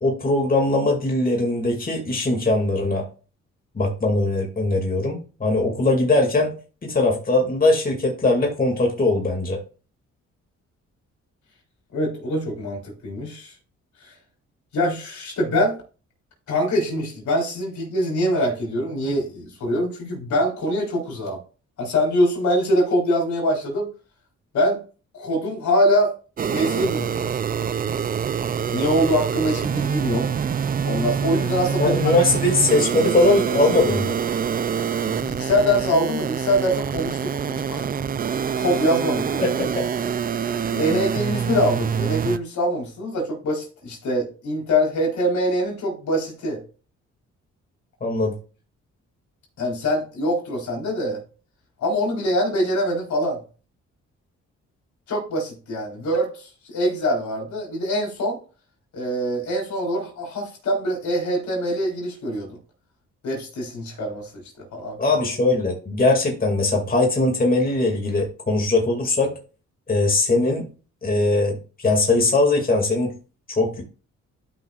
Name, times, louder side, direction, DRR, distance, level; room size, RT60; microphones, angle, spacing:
voice 1, 0.0-3.1 3.7-6.5 6.8-9.6 31.8-34.1 39.4-40.1 40.7-40.8 48.0-48.3 65.0-69.3 69.9-70.7 71.0-73.1 73.5-73.8, left 2 dB, 30° left, 1 dB, 2.4 m, -20 dB
voice 2, 11.9-13.5 14.0-14.1 14.7-15.8 16.5-21.4 21.8-23.9 24.5-24.8 25.1-26.1 26.4-27.3 28.7-30.3 30.8-32.2 35.0-37.9 38.3-39.5 40.7-46.6 49.6-51.2 51.8-53.4 55.1-58.4 58.9-62.6 63.2-65.0, equal, 75° left, -1 dB, 4.2 m, -24 dB
sound 1, 26.4-42.4, right 7 dB, 30° right, 0.4 m, -25 dB
12.5 x 6.0 x 2.5 m, 0.36 s
cardioid pair, 95°, 29 cm